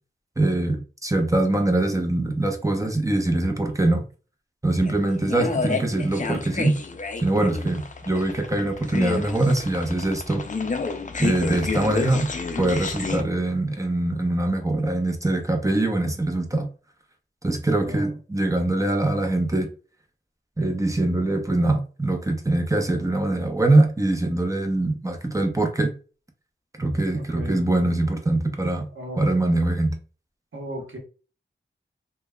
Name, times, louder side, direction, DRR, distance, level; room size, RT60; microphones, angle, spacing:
voice 1, 0.4-4.0 4.6-6.7 7.2-10.4 11.2-12.3 12.6-16.7 17.4-19.7 20.6-25.9 26.8-28.9 29.2-30.0, right 2 dB, 15° right, 0.7 m, -23 dB
sound 1, 4.8-13.2, left 4 dB, 40° left, 0.4 m, -30 dB
voice 2, 27.1-27.7 28.9-29.2 30.5-31.0, equal, 80° right, 0.9 m, -36 dB
3.1 x 2.2 x 2.2 m
cardioid pair, 50°, 20 cm